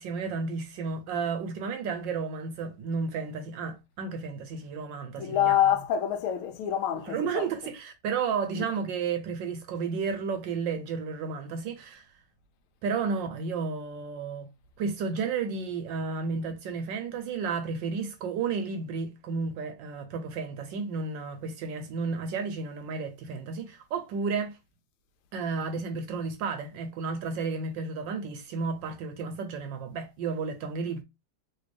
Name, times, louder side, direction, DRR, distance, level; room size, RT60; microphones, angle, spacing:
voice 1, 0.0-5.6 7.1-12.0 12.8-14.5 14.8-24.6 25.3-31.0, right 5 dB, 75° right, 1.1 m, -32 dB
voice 2, 5.2-7.4 8.6-8.7, left 10 dB, 85° left, 1.5 m, -26 dB
3.3 x 2.7 x 3.2 m
omnidirectional pair, 2.3 m